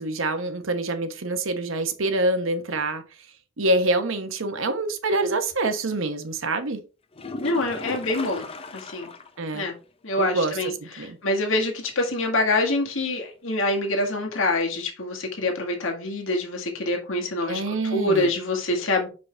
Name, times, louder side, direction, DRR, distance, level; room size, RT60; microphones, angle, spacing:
voice 1, 0.0-3.0 3.6-6.8 9.4-9.7 10.2-11.2 17.4-18.3, right 2 dB, 75° right, 0.9 m, -26 dB
sound 1, 7.1-9.4 9.7-9.8 10.3-10.4 14.1-14.2, left 3 dB, 30° left, 0.6 m, -36 dB
voice 2, 7.4-8.5 8.7-9.1 9.5-9.8 10.0-17.6 17.9-19.1, left 2 dB, 75° left, 1.7 m, -25 dB
5.7 x 5.2 x 3.3 m
head